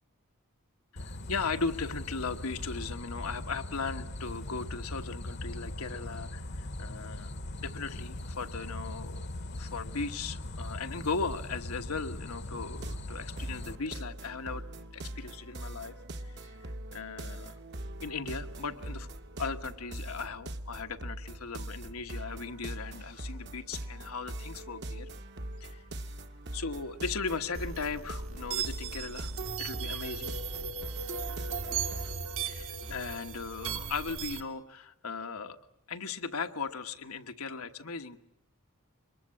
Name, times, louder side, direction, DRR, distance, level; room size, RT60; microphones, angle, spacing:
voice 1, 0.9-7.3 7.6-15.9 16.2-16.5 16.9-17.5 18.0-19.1 19.4-25.1 25.6-25.8 26.5-29.3 29.6-30.3 32.4-35.6 35.9-38.2, left 4 dB, 90° left, 7 dB, 1.3 m, -37 dB
sound 1, 1.0-13.8, left 1 dB, 50° left, 0.9 m, -40 dB
sound 2, 12.7-32.1, right 1 dB, 50° right, 1.1 m, -42 dB
sound 3, 27.5-34.4, right 6 dB, 70° right, 1.7 m, -37 dB
24.5 x 21.5 x 8.6 m, 0.84 s
head